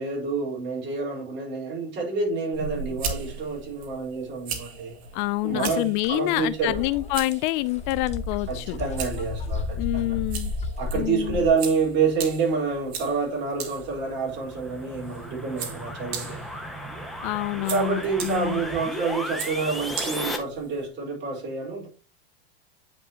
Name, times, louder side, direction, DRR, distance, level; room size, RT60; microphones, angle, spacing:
voice 1, 0.0-5.0 5.4-6.8 8.5-10.2 10.8-16.5 17.7-21.9, right 4 dB, 35° right, 4.0 m, -28 dB
sound 1, 2.5-20.9, right 6 dB, 80° right, 1.9 m, -39 dB
voice 2, 5.1-8.8 9.8-10.5 10.9-11.5 17.2-18.6, left 19 dB, 50° left, 0.4 m, -27 dB
sound 2, 6.0-6.1 6.5-11.5, left 3 dB, 20° left, 0.8 m, -32 dB
sound 3, 13.9-20.4, equal, ahead, 1.3 m, -35 dB
9.0 x 5.2 x 2.8 m
supercardioid pair, 120°, 31 cm